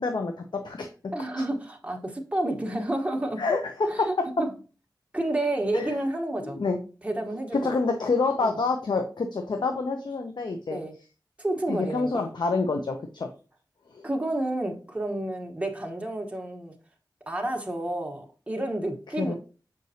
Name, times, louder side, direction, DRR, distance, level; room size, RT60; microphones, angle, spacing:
voice 1, 0.0-1.1 3.4-4.1 5.7-5.9 6.4-6.8 7.5-10.8 11.7-13.3 13.9-14.0 19.2-19.3, left 3 dB, 75° left, 0.7 m, -27 dB
voice 2, 1.1-3.6 3.9-4.0 4.4-4.5 5.1-6.6 7.0-7.8 8.4-8.5 10.7-11.0 11.4-12.2 14.0-16.8 17.3-19.3, right 1 dB, 15° right, 1.1 m, -30 dB
6.5 x 5.2 x 2.7 m
wide cardioid pair, 60°, 8 cm